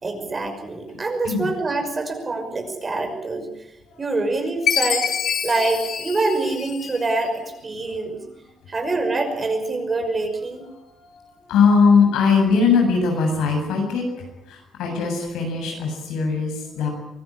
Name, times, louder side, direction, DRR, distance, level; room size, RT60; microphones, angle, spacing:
voice 1, 0.0-3.5 4.0-5.1 5.4-8.2 8.7-10.7, right 3 dB, 30° right, 5 dB, 5.9 m, -25 dB
Chime, 4.7-7.2, left 8 dB, 65° left, 2.0 m, -25 dB
voice 2, 10.7-11.2 11.5-16.9, left 5 dB, 90° left, 2 dB, 7.5 m, -20 dB
24.0 x 14.5 x 10.0 m, 0.88 s
cardioid pair, 90°, 0 cm